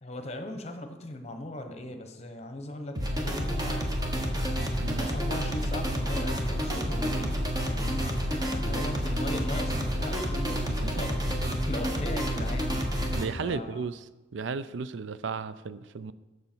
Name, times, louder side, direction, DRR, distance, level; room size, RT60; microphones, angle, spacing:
voice 1, 0.0-4.3 4.9-7.4 7.7-11.4 11.7-12.8 13.4-13.9, left 1 dB, 35° left, 6 dB, 1.0 m, -38 dB
sound 1, 3.0-13.2, equal, 20° right, 1.2 m, -29 dB
sound 2, 5.2-13.5, equal, 50° right, 3.3 m, -47 dB
voice 2, 13.1-14.0 14.3-16.1, right 5 dB, 70° right, 15 dB, 0.4 m, -34 dB
12.5 x 6.6 x 4.5 m, 1.1 s
head